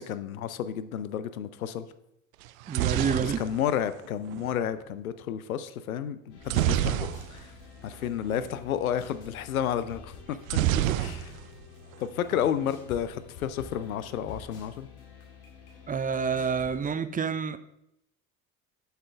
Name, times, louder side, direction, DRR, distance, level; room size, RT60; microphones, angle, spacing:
voice 1, 0.0-1.9 3.2-7.5 7.8-10.4 11.0-11.3 12.0-14.9, left 9 dB, 85° left, 13 dB, 0.6 m, -31 dB
sound 1, 2.4-4.5 6.5-7.6 7.9-8.1 8.3-8.5 10.5-11.6 11.9-12.5, right 13 dB, 75° right, 0.5 m, -28 dB
voice 2, 2.7-3.4 10.8-11.0 15.9-17.6, right 6 dB, 20° right, 12 dB, 0.5 m, -28 dB
sound 2, 6.3-16.9, left 6 dB, 60° left, 2.1 m, -48 dB
7.5 x 5.7 x 4.4 m, 0.80 s
figure-of-eight pair, 55°, 41 cm